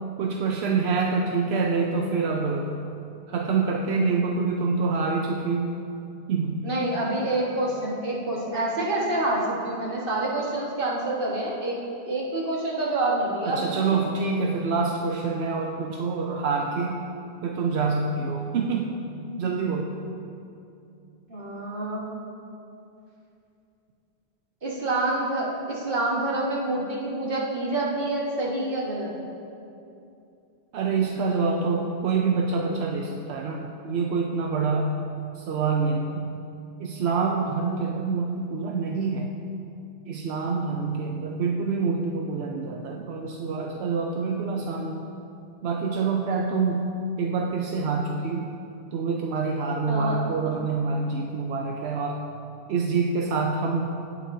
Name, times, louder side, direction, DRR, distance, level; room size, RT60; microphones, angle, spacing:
voice 1, 0.2-2.7 3.3-5.7 6.3-6.7 13.4-17.0 17.4-19.0 19.4-19.9 30.7-34.9 35.3-36.3 36.8-39.3 40.1-45.1 45.6-48.5 48.9-52.2 52.7-53.9, right 4 dB, 85° right, 1 dB, 0.9 m, -26 dB
voice 2, 6.6-11.8 12.0-14.0 21.3-22.0 24.6-29.1 49.9-50.2, right 2 dB, 60° right, -4 dB, 1.8 m, -27 dB
17.0 x 7.4 x 2.7 m, 2.7 s
omnidirectional pair, 1.0 m